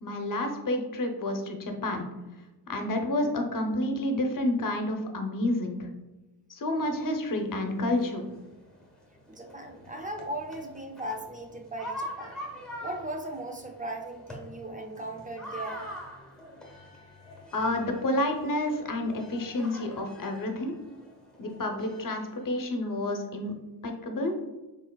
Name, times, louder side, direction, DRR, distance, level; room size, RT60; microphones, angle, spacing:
voice 1, 0.0-2.1 2.7-5.9 6.5-8.2 17.5-20.8 21.4-23.5 23.8-24.4, left 1 dB, 45° left, 4 dB, 0.7 m, -29 dB
sound 1, 6.8-22.6, equal, ahead, 0.9 m, -45 dB
voice 2, 9.3-12.4 12.8-15.9, right 1 dB, 20° right, 3 dB, 0.4 m, -38 dB
4.4 x 3.5 x 2.2 m, 1.1 s
cardioid pair, 90°, 48 cm